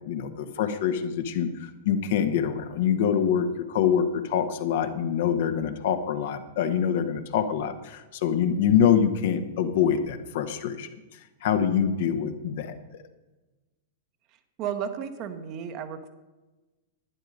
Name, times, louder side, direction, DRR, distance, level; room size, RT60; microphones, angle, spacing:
voice 1, 0.0-10.9 11.4-12.7, left 8 dB, 55° left, 8 dB, 1.1 m, -25 dB
voice 2, 14.6-16.1, right 8 dB, 40° right, 8 dB, 1.1 m, -33 dB
11.0 x 10.5 x 5.1 m, 1.1 s
figure-of-eight pair, 95°, 0 cm